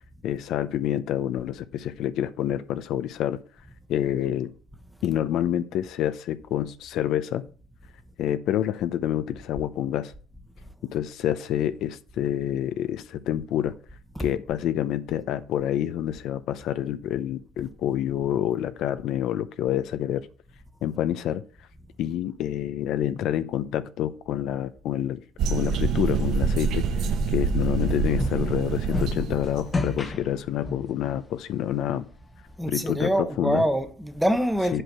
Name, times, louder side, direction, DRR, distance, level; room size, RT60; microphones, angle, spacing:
voice 1, 0.2-3.4 3.9-4.5 5.0-7.4 8.2-10.1 10.8-13.7 14.2-20.3 20.8-21.4 22.0-25.2 25.5-26.8 27.3-32.1 32.7-33.6 34.7-34.8, left 11 dB, 70° left, 0.6 m, -27 dB
sound 1, 25.4-29.7, right 5 dB, 65° right, 0.8 m, -26 dB
sound 2, 27.5-31.0, left 2 dB, 25° left, 1.0 m, -32 dB
voice 2, 32.6-34.8, equal, ahead, 0.9 m, -25 dB
7.9 x 4.6 x 6.6 m
cardioid pair, 115°, 0 cm